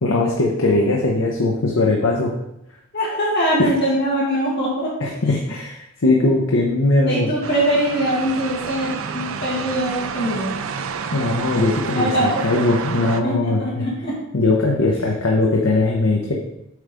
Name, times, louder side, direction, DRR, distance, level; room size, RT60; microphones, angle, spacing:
voice 1, 0.0-2.3 3.6-3.7 5.0-7.3 11.1-13.8 14.3-16.3, left 2 dB, 85° left, -1 dB, 1.0 m, -19 dB
voice 2, 2.9-5.1 7.0-10.6 11.9-12.4 13.2-14.1, right 1 dB, 50° left, -6 dB, 1.8 m, -22 dB
sound 1, 7.4-13.2, right 6 dB, 75° right, 0.5 m, -29 dB
7.9 x 3.5 x 5.2 m, 0.82 s
head